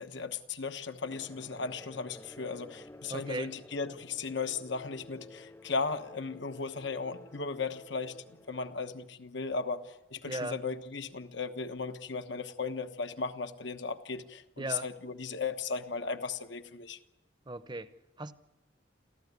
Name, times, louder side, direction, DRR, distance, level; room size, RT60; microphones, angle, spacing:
voice 1, 0.0-8.2 8.5-17.0, left 4 dB, 65° left, 9 dB, 1.2 m, -36 dB
sound 1, 1.1-8.8, left 1 dB, 15° left, 0.9 m, -53 dB
voice 2, 3.1-3.5 10.3-10.6 14.6-14.9 17.4-18.3, right 2 dB, 25° right, 12 dB, 0.8 m, -37 dB
27.0 x 15.0 x 9.5 m, 1.0 s
head